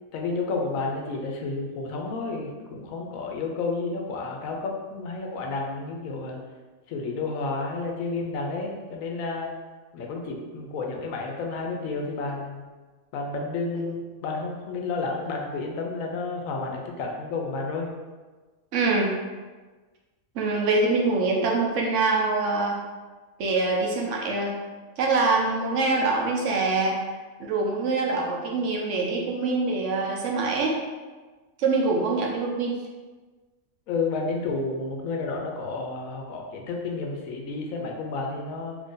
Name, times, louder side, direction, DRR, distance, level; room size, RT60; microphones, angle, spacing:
voice 1, 0.1-6.4 6.9-9.5 9.9-12.6 13.1-17.9 33.9-38.8, left 3 dB, 80° left, 1 dB, 1.0 m, -31 dB
voice 2, 18.7-19.1 20.3-22.8 23.4-24.6 25.0-27.0 27.4-30.8 31.6-32.8, right 3 dB, 65° right, -1 dB, 0.9 m, -24 dB
2.9 x 2.6 x 3.7 m, 1.3 s
omnidirectional pair, 1.4 m